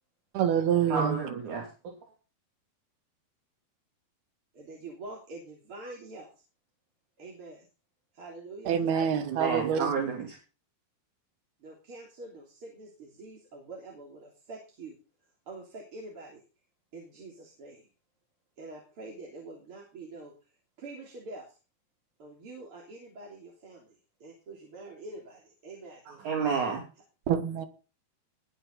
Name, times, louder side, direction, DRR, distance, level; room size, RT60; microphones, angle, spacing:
voice 1, 0.3-1.2 8.7-9.9 27.3-27.7, right 8 dB, 75° right, 3.6 m, -26 dB
voice 2, 0.9-1.6 8.9-10.4 26.1-26.8, right 5 dB, 50° right, 4.2 m, -31 dB
voice 3, 4.5-6.3 7.2-7.7 8.1-8.8 11.6-16.4 16.9-17.9 18.6-20.5 20.8-21.6 22.2-26.0, right 2 dB, 35° right, 3.8 m, -46 dB
20.0 x 8.0 x 4.0 m
omnidirectional pair, 4.5 m